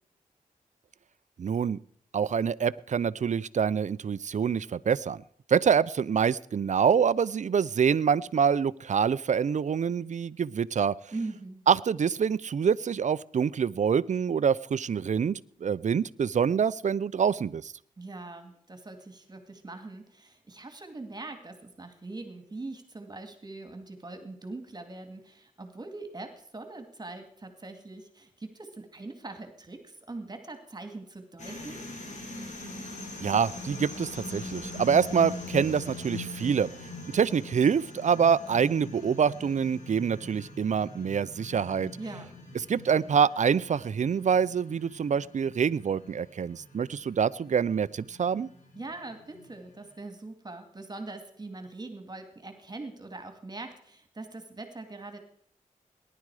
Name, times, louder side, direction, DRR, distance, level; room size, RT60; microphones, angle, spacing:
voice 1, 1.4-1.8 2.1-5.2 5.5-10.9 11.7-17.7 33.2-36.7 37.1-41.9 42.7-48.5, right 7 dB, 60° right, 18 dB, 0.5 m, -26 dB
voice 2, 11.1-11.6 18.0-31.8 42.0-42.3 48.7-55.2, right 2 dB, 30° right, 7 dB, 2.3 m, -42 dB
sound 1, 31.4-49.9, left 2 dB, 60° left, 4.2 m, -42 dB
19.0 x 11.0 x 4.9 m, 0.64 s
wide cardioid pair, 85°, 14 cm